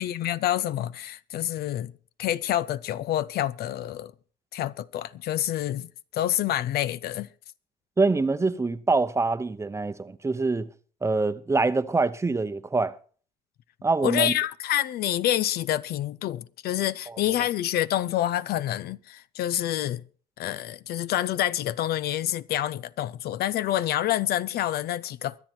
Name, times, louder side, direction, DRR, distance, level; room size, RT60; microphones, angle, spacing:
voice 1, 0.0-1.9 2.2-4.1 4.5-7.3 14.0-20.0 20.4-25.4, left 12 dB, 70° left, 0.6 m, -27 dB
voice 2, 8.0-10.7 11.0-13.0 13.8-14.3, right 3 dB, 15° right, 0.8 m, -25 dB
24.0 x 8.0 x 4.4 m
cardioid pair, 110°, 17 cm